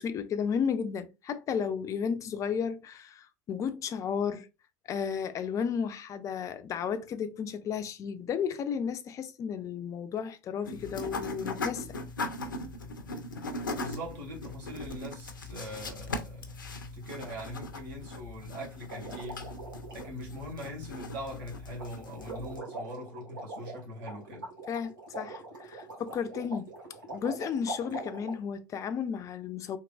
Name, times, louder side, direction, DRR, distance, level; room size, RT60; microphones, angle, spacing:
voice 1, 0.0-4.5 4.9-11.9 24.7-26.7 27.1-29.8, left 7 dB, 30° left, 0.4 m, -33 dB
sound 1, 10.6-22.6, left 2 dB, 80° left, 0.6 m, -39 dB
voice 2, 13.7-19.5 19.9-24.5, equal, 60° right, 1.6 m, -42 dB
sound 2, 18.9-20.1 21.8-21.9 22.2-28.4, right 2 dB, 75° right, 1.4 m, -42 dB
3.7 x 2.9 x 2.2 m
figure-of-eight pair, 75°, 11 cm